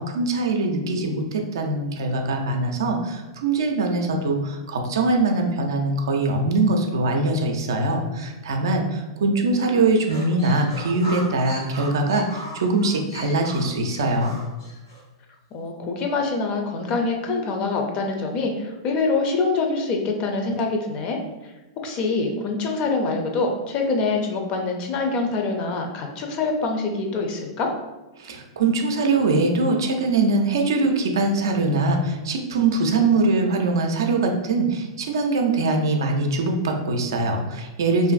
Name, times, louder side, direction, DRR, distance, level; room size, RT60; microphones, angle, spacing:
voice 1, 0.0-14.4 28.2-38.1, right 2 dB, 75° right, 3 dB, 0.4 m, -22 dB
voice 2, 9.3-9.6 15.5-21.2 21.8-27.7, left 3 dB, 40° left, 3 dB, 0.5 m, -25 dB
sound 1, 9.9-15.0, equal, 80° left, 1.3 m, -38 dB
2.5 x 2.5 x 2.4 m, 1.1 s
hypercardioid pair, 105°, 2 cm